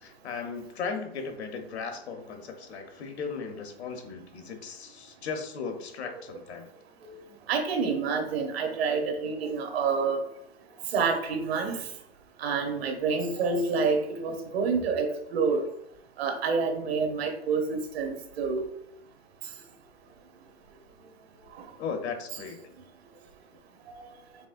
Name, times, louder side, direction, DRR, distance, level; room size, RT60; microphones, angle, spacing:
voice 1, 0.0-6.7 21.8-22.6, left 5 dB, 85° left, 5 dB, 1.0 m, -36 dB
voice 2, 7.5-10.2 10.9-11.8 12.4-15.6 16.2-18.6, right 5 dB, 70° right, 4 dB, 1.1 m, -28 dB
5.2 x 3.5 x 2.5 m, 0.76 s
hypercardioid pair, 140°, 32 cm